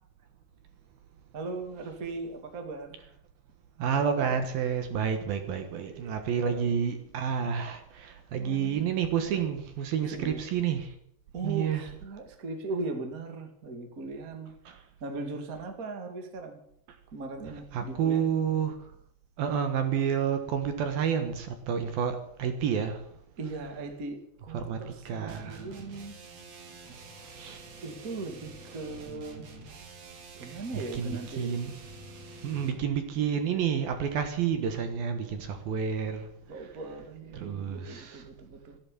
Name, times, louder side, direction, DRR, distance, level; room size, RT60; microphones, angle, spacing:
voice 1, 1.3-3.0 5.7-6.2 6.5-6.6 8.4-8.9 9.2-9.4 10.0-10.4 11.3-16.6 17.1-18.2 23.4-26.2 27.8-29.5 30.4-31.6 36.5-38.8, right 3 dB, 30° right, 5 dB, 1.9 m, -39 dB
voice 2, 3.8-11.0 11.4-11.9 14.7-14.8 17.7-18.8 19.4-23.1 24.5-25.7 27.3-27.6 30.4-31.7 32.4-36.3 37.3-38.3, right 7 dB, 65° right, 7 dB, 2.9 m, -30 dB
sound 1, 25.3-32.9, right 3 dB, 45° right, 3.1 m, -48 dB
14.5 x 12.0 x 8.6 m, 0.68 s
omnidirectional pair, 4.9 m